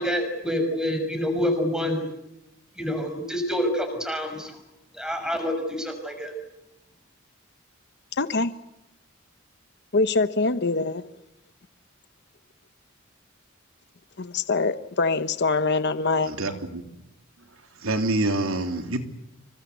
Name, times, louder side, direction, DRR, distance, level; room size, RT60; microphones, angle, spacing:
voice 1, 0.0-2.0 2.8-4.5 4.9-6.3, equal, 5° right, 6 dB, 6.1 m, -27 dB
voice 2, 8.2-8.5 9.9-11.0 14.2-16.3, left 3 dB, 55° left, 12 dB, 1.0 m, -24 dB
voice 3, 16.2-16.8 17.8-19.0, right 2 dB, 85° right, 6 dB, 3.2 m, -26 dB
27.0 x 24.5 x 8.3 m, 0.90 s
head